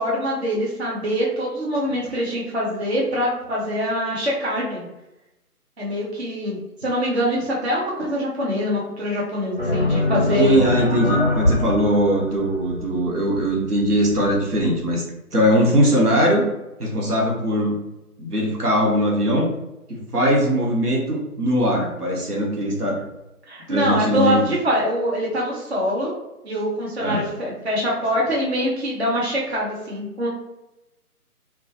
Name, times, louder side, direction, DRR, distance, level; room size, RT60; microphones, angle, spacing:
voice 1, 0.0-4.9 5.8-10.6 23.5-26.1 26.4-30.3, equal, 45° right, -4 dB, 0.6 m, -24 dB
sound 1, 9.6-14.7, left 1 dB, 40° left, 0.5 m, -24 dB
voice 2, 10.4-15.0 15.3-16.4 16.8-17.7 18.2-19.5 19.9-23.0 23.7-24.5 27.0-27.2, equal, 80° right, -1 dB, 0.9 m, -20 dB
2.2 x 2.0 x 2.8 m, 0.94 s
figure-of-eight pair, 155°, 46 cm